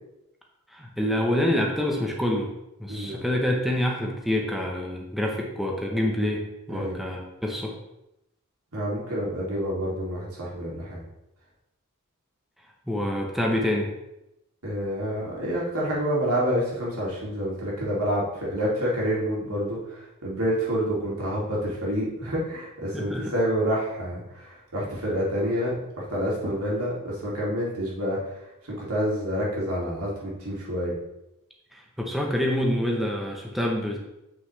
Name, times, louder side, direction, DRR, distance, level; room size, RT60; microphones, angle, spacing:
voice 1, 0.7-2.5 2.8-7.7 12.9-13.9 22.9-23.3 31.7-34.0, left 1 dB, ahead, -1 dB, 0.9 m, -26 dB
voice 2, 2.9-3.2 6.7-7.0 8.7-11.0 14.6-28.3 28.6-30.9, equal, 80° right, -5 dB, 2.6 m, -28 dB
7.8 x 6.2 x 3.2 m, 0.89 s
head